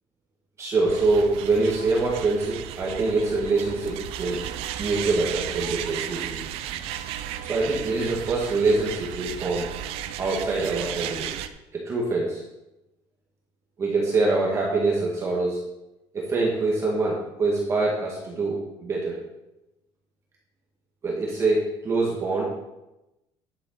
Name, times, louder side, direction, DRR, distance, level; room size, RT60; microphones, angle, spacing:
voice 1, 0.6-4.4 4.8-6.4 7.4-9.7 10.2-11.3 11.7-12.4 13.8-15.6 16.1-19.2 21.0-22.4, right 3 dB, 30° right, -4 dB, 2.2 m, -24 dB
sound 1, 0.9-11.5, right 11 dB, 70° right, 0.7 m, -34 dB
11.0 x 7.7 x 4.1 m, 0.95 s
cardioid pair, 160°, 10 cm